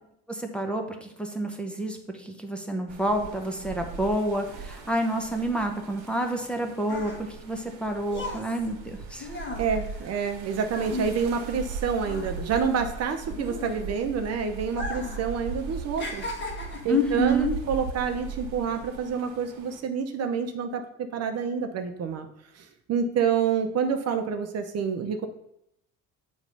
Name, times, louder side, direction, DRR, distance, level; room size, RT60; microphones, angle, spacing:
voice 1, 0.3-9.4 16.9-17.5, equal, 5° left, 2 dB, 0.9 m, -29 dB
sound 1, 2.9-19.8, right 4 dB, 70° right, 1.2 m, -39 dB
sound 2, 6.4-11.7 12.0-14.1 14.7-15.3 15.5-17.0 17.7-17.9, left 2 dB, 35° left, 1.3 m, -37 dB
voice 2, 9.6-16.3 16.8-22.3 22.5-25.3, right 6 dB, 50° right, 6 dB, 0.7 m, -28 dB
7.2 x 3.1 x 5.3 m, 0.77 s
cardioid pair, 100°, 32 cm